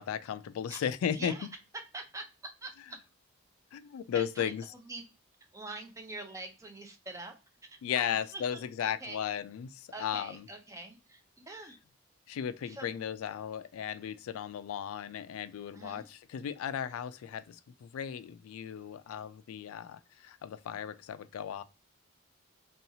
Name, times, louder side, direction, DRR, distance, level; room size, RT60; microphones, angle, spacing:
voice 1, 0.0-1.4 3.7-4.6 7.8-10.5 12.3-21.6, left 9 dB, 85° left, 0.3 m, -35 dB
voice 2, 1.1-1.5 1.9-2.2 2.6-3.0 4.1-5.0 5.5-7.3 7.6-9.2 9.9-11.8 12.6-12.9 15.7-16.1, right 2 dB, 15° right, 0.4 m, -45 dB
2.7 x 2.4 x 2.6 m
head